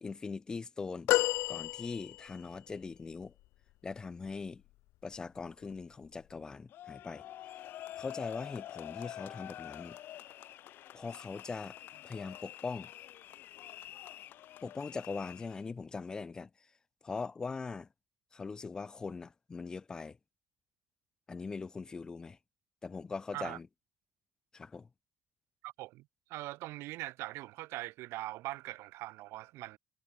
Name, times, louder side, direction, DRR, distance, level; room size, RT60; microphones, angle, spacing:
voice 1, 0.0-1.1 1.5-3.3 3.8-4.6 5.0-7.2 8.0-10.0 10.9-11.8 12.0-12.9 14.6-16.5 17.0-17.9 18.3-20.2 21.3-22.4 22.8-23.7 24.5-24.9, left 4 dB, 15° left, 0.4 m, -41 dB
sound 1, 1.1-2.5 3.2-3.3, left 19 dB, 90° left, 0.6 m, -30 dB
sound 2, 6.7-15.6, left 13 dB, 55° left, 0.9 m, -47 dB
voice 2, 25.6-26.0 26.3-29.8, right 18 dB, 85° right, 0.6 m, -41 dB
cardioid pair, 175°, 4 cm